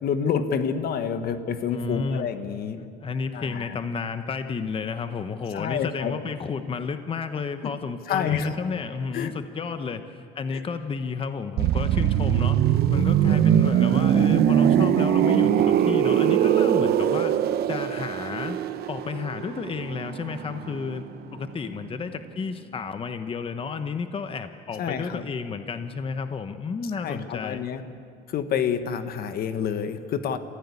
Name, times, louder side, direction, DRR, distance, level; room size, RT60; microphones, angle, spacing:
voice 1, 0.0-2.9 3.3-3.8 5.5-6.1 7.6-7.7 8.1-8.5 9.1-9.3 10.5-10.6 24.8-25.2 27.0-27.8 28.3-30.4, left 7 dB, 65° left, 10 dB, 1.3 m, -28 dB
voice 2, 1.7-2.3 3.0-18.6 18.9-21.1 21.3-27.6, left 5 dB, 30° left, 9 dB, 1.0 m, -31 dB
sound 1, 11.6-21.2 21.5-21.7, right 10 dB, 70° right, 0.9 m, -22 dB
28.0 x 15.0 x 8.4 m, 2.4 s
cardioid pair, 110°, 17 cm